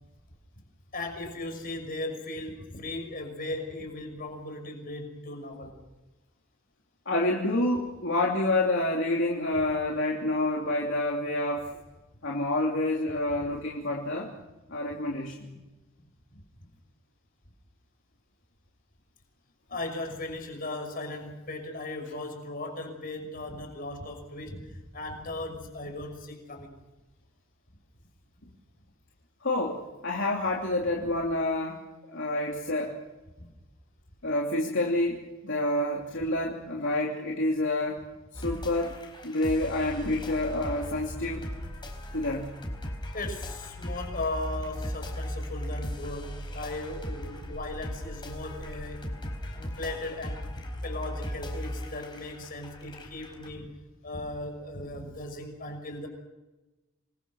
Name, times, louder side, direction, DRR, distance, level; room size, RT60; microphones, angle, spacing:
voice 1, 0.9-5.9 16.3-16.4 19.7-26.8 33.4-33.5 43.1-49.1 49.6-53.7 54.0-56.1, left 2 dB, 40° left, 4 dB, 6.1 m, -37 dB
voice 2, 7.0-11.7 12.2-14.3 14.7-15.5 29.4-31.8 32.1-32.9 34.2-35.2 35.4-38.0 38.3-39.0 39.2-41.5 42.1-42.5, left 1 dB, 60° left, -2 dB, 3.1 m, -28 dB
sound 1, 38.3-53.5, equal, 20° left, 4.5 m, -38 dB
27.5 x 21.5 x 6.4 m, 1.1 s
head